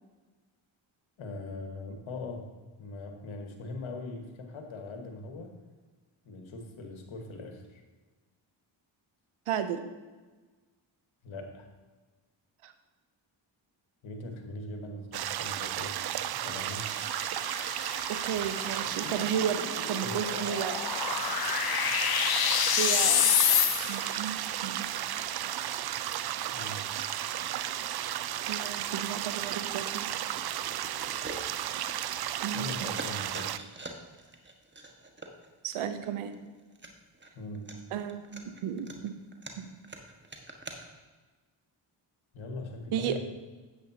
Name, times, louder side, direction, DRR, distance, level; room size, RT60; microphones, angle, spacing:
voice 1, 1.2-2.5 2.8-5.6 6.2-7.8 11.2-11.7 14.0-17.0 20.0-20.3 26.5-27.0 32.5-33.6 37.3-37.8 42.3-43.2, left 2 dB, 75° left, 3 dB, 1.5 m, -41 dB
voice 2, 9.5-9.9 12.6-12.7 18.1-20.8 22.8-23.2 23.9-24.9 28.5-30.1 32.4-32.9 35.6-36.3 37.9-39.1 39.6-39.7 42.9-43.2, right 8 dB, 85° right, 9 dB, 0.8 m, -33 dB
sound 1, 15.1-33.6, right 12 dB, 50° right, 0.5 m, -34 dB
sound 2, 16.8-24.2, left 9 dB, 50° left, 0.7 m, -29 dB
sound 3, 29.8-30.0 30.4-32.5 32.7-40.8, right 2 dB, 20° right, 1.4 m, -46 dB
10.0 x 8.0 x 2.8 m, 1.3 s
supercardioid pair, 50°, 49 cm